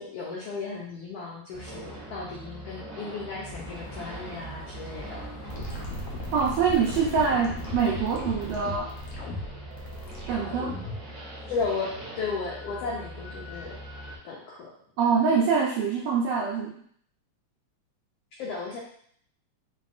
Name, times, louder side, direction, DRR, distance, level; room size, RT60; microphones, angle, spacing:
voice 1, 0.0-5.2 11.5-13.8 14.2-14.7 18.4-18.8, left 4 dB, 90° left, -4 dB, 1.3 m, -34 dB
sound 1, 1.5-14.2, right 1 dB, 55° right, 0.6 m, -42 dB
sound 2, 3.5-8.7, equal, 20° left, 1.4 m, -43 dB
sound 3, 5.5-11.1, left 2 dB, 65° left, 1.7 m, -37 dB
voice 2, 6.3-8.9 10.3-10.7 15.0-16.7, right 6 dB, 80° right, -4 dB, 1.5 m, -24 dB
4.2 x 4.0 x 2.4 m, 0.62 s
omnidirectional pair, 3.5 m